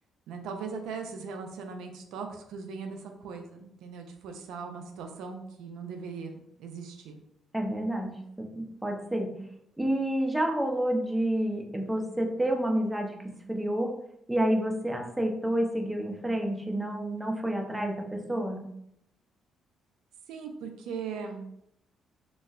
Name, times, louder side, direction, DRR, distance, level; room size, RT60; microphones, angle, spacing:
voice 1, 0.3-7.2 20.3-21.5, right 5 dB, 85° right, 4 dB, 0.4 m, -39 dB
voice 2, 7.5-8.1 8.4-9.3 9.8-13.9 14.3-18.6, right 1 dB, 10° right, 2 dB, 0.6 m, -29 dB
3.9 x 2.1 x 2.4 m, 0.75 s
cardioid pair, 90°, 0 cm